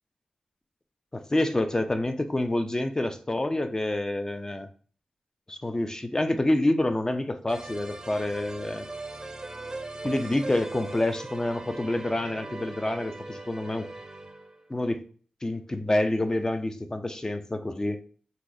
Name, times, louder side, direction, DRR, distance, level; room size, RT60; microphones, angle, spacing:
voice 1, 1.1-4.7 5.5-8.9 10.0-13.9 14.7-15.0 15.4-18.0, left 1 dB, 25° left, 9 dB, 0.5 m, -27 dB
sound 1, 7.5-14.7, right 2 dB, 25° right, 0.5 m, -40 dB
2.7 x 2.4 x 3.9 m, 0.43 s
cardioid pair, 45°, 3 cm